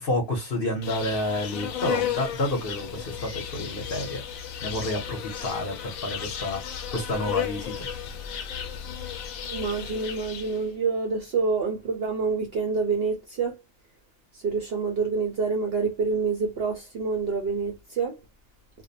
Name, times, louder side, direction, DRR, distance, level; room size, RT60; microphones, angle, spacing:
voice 1, 0.0-4.2 4.6-7.9, left 1 dB, 45° left, 0.9 m, -29 dB
Insect, 0.8-10.7, left 9 dB, 80° left, 1.0 m, -34 dB
voice 2, 9.5-13.6 14.3-18.2, right 4 dB, 60° right, 0.7 m, -27 dB
2.6 x 2.0 x 2.6 m
omnidirectional pair, 1.5 m